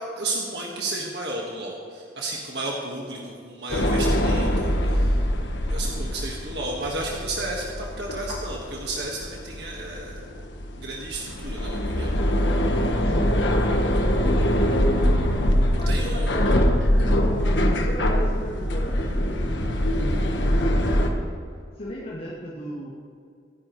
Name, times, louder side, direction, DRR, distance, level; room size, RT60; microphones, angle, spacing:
voice 1, 0.2-5.1 5.7-10.4 10.8-12.1 15.9-16.4, right 2 dB, 65° right, -2 dB, 1.7 m, -33 dB
sound 1, 3.7-21.1, equal, 80° left, 1.4 m, -23 dB
voice 2, 13.0-14.8 15.8-16.7 17.0-21.3 21.8-22.9, equal, 60° left, -10 dB, 2.6 m, -36 dB
25.5 x 10.5 x 3.2 m, 2.3 s
head